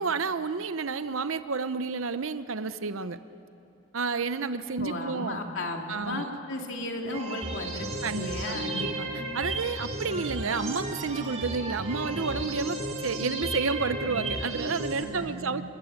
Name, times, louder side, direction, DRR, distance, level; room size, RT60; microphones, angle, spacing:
voice 1, 0.0-3.2 3.9-5.4 5.9-6.3 8.0-8.3 8.6-15.6, right 4 dB, 70° right, 12 dB, 0.8 m, -30 dB
voice 2, 4.8-8.8 15.0-15.6, left 1 dB, 60° left, 2 dB, 3.1 m, -35 dB
sound 1, 7.0-15.0, right 2 dB, 30° right, 3.1 m, -34 dB
29.5 x 20.5 x 9.0 m, 2.7 s
head